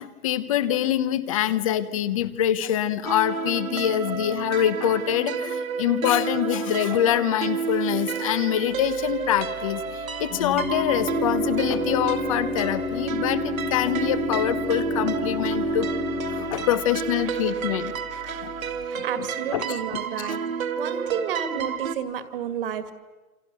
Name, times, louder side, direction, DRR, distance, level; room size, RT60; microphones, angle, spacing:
voice 1, 0.0-15.9 16.3-17.9 18.4-18.5 18.9-19.3 19.5-20.4, left 11 dB, 25° left, 15 dB, 1.0 m, -25 dB
sound 1, 3.1-22.0, right 7 dB, 65° right, 2.4 m, -30 dB
Organ, 8.7-18.8, left 6 dB, 70° left, 4.2 m, -33 dB
voice 2, 17.8-20.4 20.8-22.9, right 8 dB, 40° right, 11 dB, 2.1 m, -32 dB
28.5 x 26.5 x 6.9 m, 1.3 s
hypercardioid pair, 165°, 44 cm